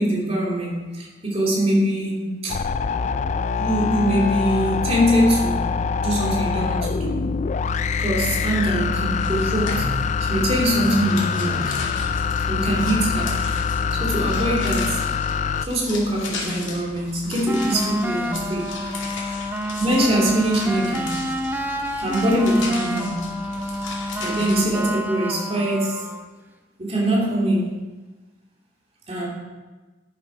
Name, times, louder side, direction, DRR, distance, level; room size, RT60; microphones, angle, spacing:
voice 1, 0.0-2.6 3.6-7.3 8.0-9.9 10.2-11.8 12.5-13.4 14.0-15.0 15.6-18.7 19.8-21.3 22.0-23.4 24.2-26.0 26.8-27.7 29.1-29.3, equal, 30° right, -3 dB, 2.6 m, -23 dB
sound 1, 2.5-15.7, left 5 dB, 35° left, 0.3 m, -24 dB
sound 2, 9.1-24.9, left 3 dB, 75° left, 2.4 m, -36 dB
sound 3, 17.5-26.3, equal, 10° right, 0.5 m, -28 dB
10.5 x 7.6 x 5.0 m, 1.2 s
head